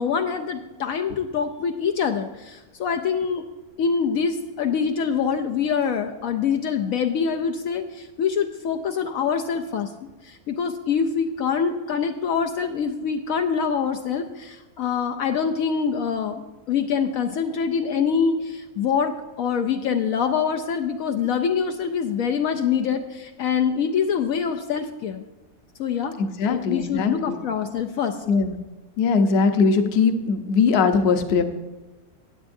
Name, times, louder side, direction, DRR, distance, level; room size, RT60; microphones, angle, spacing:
voice 1, 0.0-3.4 3.8-9.9 10.3-16.4 16.7-25.2 25.8-26.1 26.5-28.1, left 6 dB, 75° left, 6 dB, 1.0 m, -25 dB
voice 2, 26.2-27.4 28.3-28.6 29.0-31.4, left 5 dB, 50° left, 7 dB, 0.9 m, -20 dB
15.0 x 9.1 x 2.6 m, 1.2 s
omnidirectional pair, 1.6 m